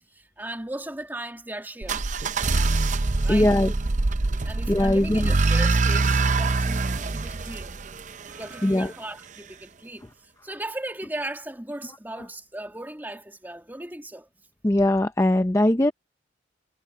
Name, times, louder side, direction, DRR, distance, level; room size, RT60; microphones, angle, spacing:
voice 1, 0.1-2.0 3.2-3.5 4.4-7.7 8.3-14.3, right 1 dB, 10° right, 2.3 m, -37 dB
sound 1, 1.8-8.7, right 3 dB, 40° right, 0.6 m, -24 dB
voice 2, 3.3-3.7 4.7-5.3 8.6-8.9 14.6-15.9, left 1 dB, 15° left, 0.6 m, -20 dB
head